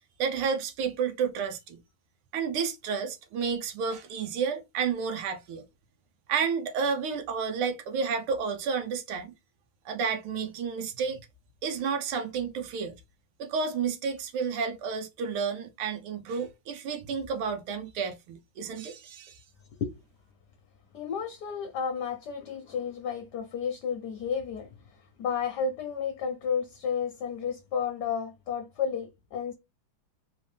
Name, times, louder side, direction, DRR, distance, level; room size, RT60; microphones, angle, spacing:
voice 1, 0.2-1.8 2.3-5.6 6.3-9.3 9.8-11.3 11.6-13.0 13.4-19.4, right 6 dB, 90° right, 1.7 m, -31 dB
voice 2, 20.9-24.7 25.2-29.5, left 6 dB, 60° left, 1.2 m, -32 dB
4.2 x 3.1 x 3.3 m
omnidirectional pair, 2.3 m